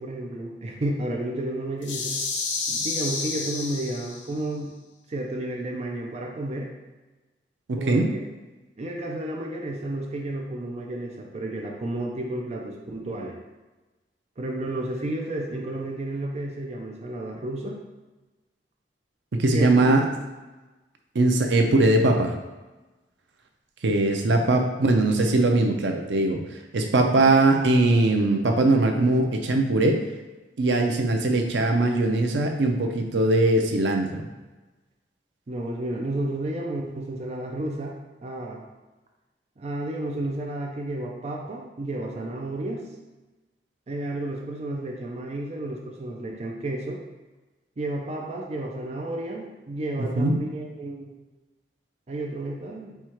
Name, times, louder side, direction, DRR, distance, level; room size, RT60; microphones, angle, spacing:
voice 1, 0.0-2.2 2.7-4.7 5.1-6.7 7.8-8.3 8.8-13.4 14.4-17.8 19.5-19.9 35.5-38.0 38.2-38.7 39.6-42.8 43.9-47.0 47.8-51.3 52.1-53.0, right 1 dB, 40° right, 1 dB, 0.5 m, -32 dB
sound 1, 1.8-4.4, left 4 dB, 90° left, 0.6 m, -30 dB
voice 2, 7.7-8.1 19.3-20.1 21.1-22.3 23.8-26.4 26.7-30.0 30.6-34.3 50.0-50.4, right 2 dB, 85° right, 4 dB, 0.6 m, -21 dB
4.5 x 2.4 x 4.4 m, 1.2 s
head